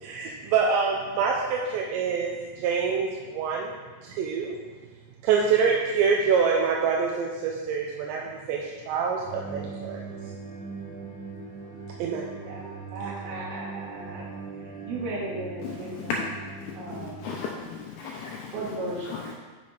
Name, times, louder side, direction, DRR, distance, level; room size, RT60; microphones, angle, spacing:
voice 1, 0.0-3.7 4.0-4.6 5.2-10.0 12.0-12.2, right 5 dB, 85° right, -1 dB, 2.9 m, -26 dB
sound 1, 9.2-17.4, right 4 dB, 5° left, 1.8 m, -40 dB
voice 2, 12.4-14.2 14.5-16.1 16.7-17.3 18.5-19.3, right 2 dB, 65° right, -7 dB, 3.3 m, -36 dB
voice 3, 15.6-16.3 16.9-19.3, left 5 dB, 80° left, -1 dB, 2.4 m, -35 dB
8.4 x 6.2 x 4.9 m, 1.4 s
omnidirectional pair, 5.1 m